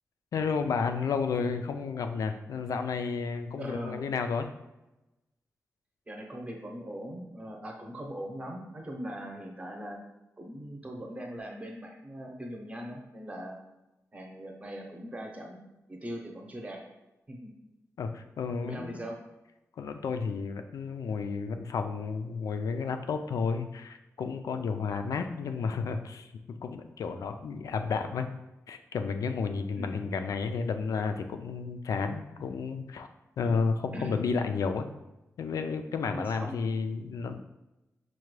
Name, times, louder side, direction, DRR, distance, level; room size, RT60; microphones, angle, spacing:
voice 1, 0.3-4.5 18.0-19.0 19.8-28.3 28.7-33.1 33.4-34.9 35.4-37.4, left 5 dB, 85° left, 7 dB, 0.3 m, -32 dB
voice 2, 3.6-4.1 6.1-10.0 10.4-13.6 14.1-15.6 15.9-16.8 17.3-17.5 18.6-19.2 29.8-30.1 33.4-33.6 33.9-34.2 36.1-36.5, equal, 25° right, 1 dB, 0.7 m, -40 dB
5.6 x 2.2 x 3.1 m, 0.97 s
wide cardioid pair, 140°, 6 cm